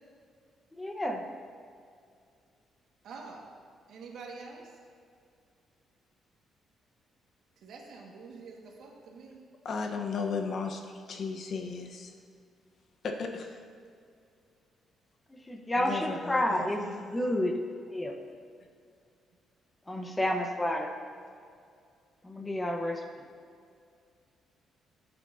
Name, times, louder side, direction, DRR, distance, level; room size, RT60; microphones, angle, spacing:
voice 1, 0.8-1.2 15.5-17.6 17.9-18.2 19.9-20.9 22.2-23.0, left 1 dB, 15° left, 3 dB, 1.1 m, -30 dB
voice 2, 3.0-3.5 3.9-4.8 7.6-9.4, right 4 dB, 75° right, -1 dB, 1.8 m, -46 dB
voice 3, 9.6-12.1 13.0-13.6 15.8-17.0, left 5 dB, 60° left, 3 dB, 1.1 m, -35 dB
14.0 x 8.3 x 2.8 m, 2.3 s
cardioid pair, 90°, 0 cm